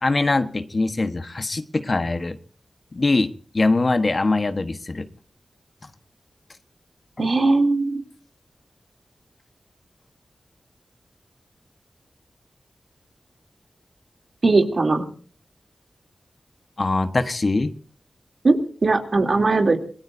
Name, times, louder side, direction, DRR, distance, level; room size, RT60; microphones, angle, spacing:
voice 1, 0.0-2.4 2.9-5.1 7.2-7.3 16.8-17.7, left 3 dB, 45° left, 10 dB, 1.2 m, -22 dB
voice 2, 7.2-8.0 14.4-15.1 18.4-19.8, right 3 dB, 60° right, 3 dB, 3.0 m, -19 dB
26.5 x 20.5 x 2.7 m, 0.43 s
wide cardioid pair, 80°, 0 cm